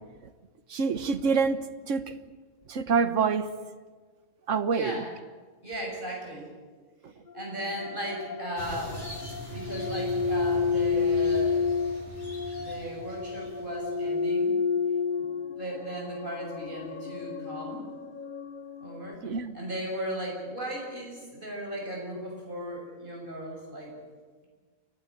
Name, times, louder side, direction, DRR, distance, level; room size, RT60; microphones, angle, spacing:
voice 1, 0.7-2.1 2.7-3.5 4.5-4.9 19.2-19.5, right 5 dB, 60° right, 11 dB, 1.5 m, -26 dB
voice 2, 4.7-5.1 5.6-6.5 7.3-9.0 9.5-11.6 12.5-14.6 15.2-17.8 18.8-19.3 19.5-23.9, right 1 dB, 35° right, -1 dB, 6.9 m, -36 dB
sound 1, 7.3-19.1, left 5 dB, 40° left, 1.0 m, -31 dB
sound 2, 8.6-14.3, left 1 dB, 70° left, 7.7 m, -42 dB
29.0 x 12.0 x 9.8 m, 1.5 s
omnidirectional pair, 1.5 m